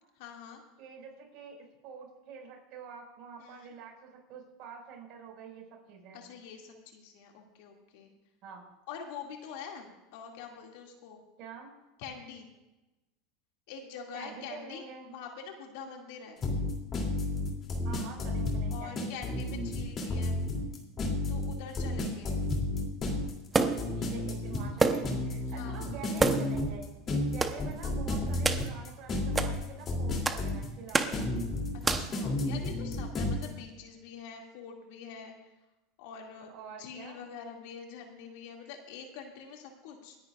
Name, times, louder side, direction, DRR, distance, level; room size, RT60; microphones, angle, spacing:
voice 1, 0.2-0.6 3.4-3.7 6.1-8.1 8.9-11.2 12.0-12.5 13.7-16.4 18.7-20.4 21.3-22.3 25.5-25.9 31.9-35.3 36.0-40.2, left 6 dB, 70° left, 1 dB, 2.3 m, -45 dB
voice 2, 0.8-6.2 8.4-8.6 11.4-11.7 14.1-15.1 17.8-19.1 23.9-26.9 27.2-31.3 36.5-37.2, right 5 dB, 55° right, 0 dB, 5.2 m, -47 dB
sound 1, 16.4-33.5, left 2 dB, 30° left, 2.9 m, -32 dB
sound 2, 23.5-24.0 24.8-25.2 25.5-25.6 26.2-26.6 27.4-27.6 28.4-28.7 29.3-29.5 30.2-30.5 30.9-31.2 31.8-32.2, right 3 dB, 15° right, 0.9 m, -28 dB
28.0 x 10.5 x 2.5 m, 1.0 s
supercardioid pair, 125°, 0 cm